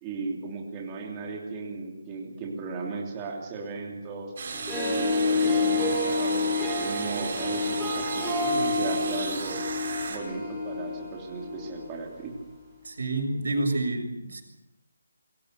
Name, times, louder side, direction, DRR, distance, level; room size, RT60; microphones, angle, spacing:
voice 1, 0.0-4.3 4.8-9.6 10.1-12.3, right 4 dB, 15° right, -1 dB, 3.1 m, -36 dB
sound 1, 4.4-10.2, right 5 dB, 35° right, 4.5 m, -36 dB
Harp, 4.5-12.0, left 3 dB, 5° left, 4.9 m, -28 dB
voice 2, 12.8-14.4, right 2 dB, 60° right, 4 dB, 6.8 m, -28 dB
27.0 x 23.5 x 6.8 m, 0.89 s
hypercardioid pair, 175°, 0 cm